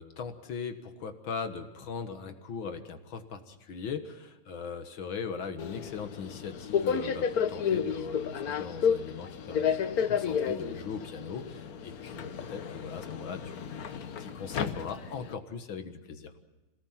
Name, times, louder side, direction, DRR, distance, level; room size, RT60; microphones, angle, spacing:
voice 1, 0.0-9.8 10.0-16.3, left 6 dB, 65° left, 8 dB, 2.2 m, -40 dB
Subway metro underground, 5.6-15.3, left 7 dB, 50° left, 1.3 m, -32 dB
27.0 x 18.0 x 7.4 m, 1.1 s
omnidirectional pair, 2.3 m